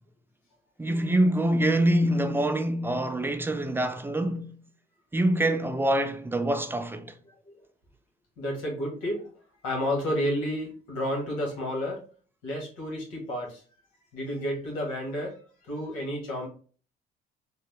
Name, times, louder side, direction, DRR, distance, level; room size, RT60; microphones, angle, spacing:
voice 1, 0.8-4.5 5.1-7.1, right 1 dB, 10° right, 0.5 m, -25 dB
voice 2, 8.4-9.3 9.6-12.1 12.4-13.6 14.1-15.4 15.7-16.5, equal, 85° left, 1.5 m, -31 dB
3.7 x 2.2 x 3.2 m
supercardioid pair, 75°, 20 cm